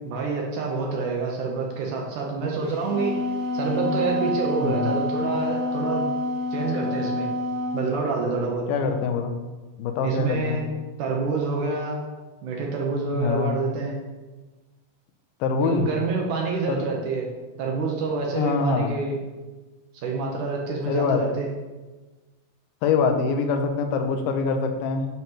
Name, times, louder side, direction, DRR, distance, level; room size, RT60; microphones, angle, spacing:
voice 1, 0.0-3.2 3.5-6.1 6.5-7.3 7.7-8.7 10.0-10.6 11.0-12.0 12.4-14.0 15.6-17.3 17.6-19.2 20.0-21.5, right 4 dB, 70° right, -1 dB, 2.1 m, -27 dB
Wind instrument woodwind instrument, 2.7-7.8, left 2 dB, 55° left, 0.5 m, -27 dB
voice 2, 4.6-4.9 8.7-9.4 9.8-10.6 13.1-13.5 15.4-15.9 16.7-16.8 18.4-18.9 20.9-21.2 22.8-25.1, left 5 dB, 85° left, 6 dB, 2.6 m, -24 dB
10.5 x 5.7 x 3.0 m, 1.2 s
omnidirectional pair, 4.2 m